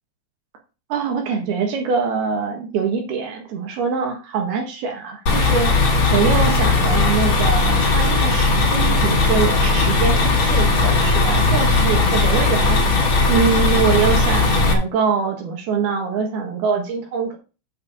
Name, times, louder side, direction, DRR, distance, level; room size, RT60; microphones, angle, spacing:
voice 1, 0.9-17.4, right 5 dB, 65° right, 3 dB, 3.0 m, -24 dB
sound 1, 5.3-14.7, left 3 dB, 45° left, 3.1 m, -17 dB
8.4 x 4.8 x 6.9 m, 0.33 s
omnidirectional pair, 5.6 m